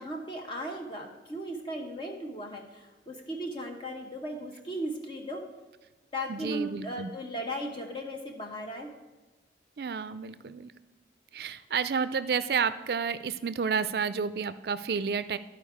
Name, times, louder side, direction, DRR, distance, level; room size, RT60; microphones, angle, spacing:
voice 1, 0.0-5.4 6.1-8.9, equal, 30° left, 1 dB, 0.9 m, -37 dB
voice 2, 6.3-7.1 9.8-10.7 11.3-15.4, right 6 dB, 60° right, 14 dB, 0.4 m, -30 dB
12.5 x 4.7 x 4.9 m, 1.2 s
head